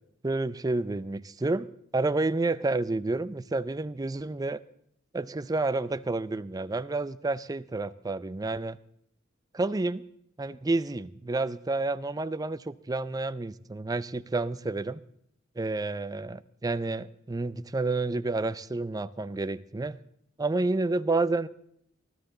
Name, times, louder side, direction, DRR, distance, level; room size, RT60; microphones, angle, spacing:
voice 1, 0.2-1.7 1.9-4.6 5.1-8.8 9.5-10.1 10.4-15.0 15.6-20.0 20.4-21.5, right 2 dB, 20° right, 15 dB, 0.4 m, -30 dB
20.0 x 13.0 x 3.8 m, 0.69 s
head